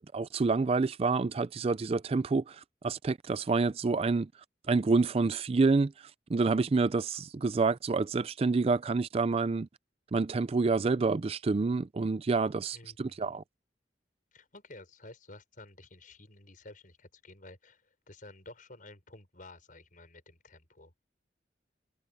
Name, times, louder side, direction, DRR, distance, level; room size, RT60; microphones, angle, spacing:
voice 1, 0.1-4.3 4.7-5.9 6.3-9.7 10.1-13.4, right 4 dB, 35° right, 0.4 m, -28 dB
voice 2, 12.7-13.4 14.3-20.9, left 2 dB, 50° left, 5.8 m, -52 dB
head